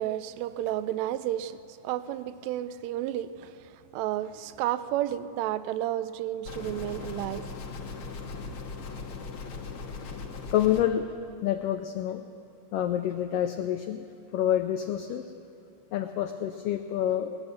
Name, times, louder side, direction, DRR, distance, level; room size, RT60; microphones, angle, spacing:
voice 1, 0.0-7.4, right 12 dB, 80° right, 1.7 m, -32 dB
sound 1, 6.5-10.8, left 4 dB, 60° left, 1.6 m, -39 dB
voice 2, 10.5-11.1 11.4-12.2 12.7-14.0 14.3-15.3 15.9-17.4, left 11 dB, 90° left, 1.3 m, -27 dB
20.0 x 8.9 x 7.2 m
omnidirectional pair, 3.3 m